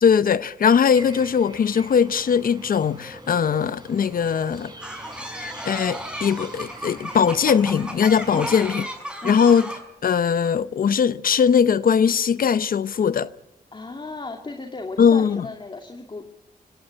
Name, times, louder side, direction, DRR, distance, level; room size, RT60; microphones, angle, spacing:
voice 1, 0.0-4.7 5.3-8.8 9.2-9.7 10.0-13.3 15.0-15.5, left 7 dB, 70° left, 0.8 m, -20 dB
sound 1, 0.9-8.8, right 2 dB, 30° right, 5.4 m, -44 dB
sound 2, 4.8-9.8, right 1 dB, 5° right, 5.1 m, -34 dB
voice 2, 13.7-16.3, left 3 dB, 35° left, 2.4 m, -35 dB
25.0 x 17.0 x 8.8 m
cardioid pair, 80°, 15 cm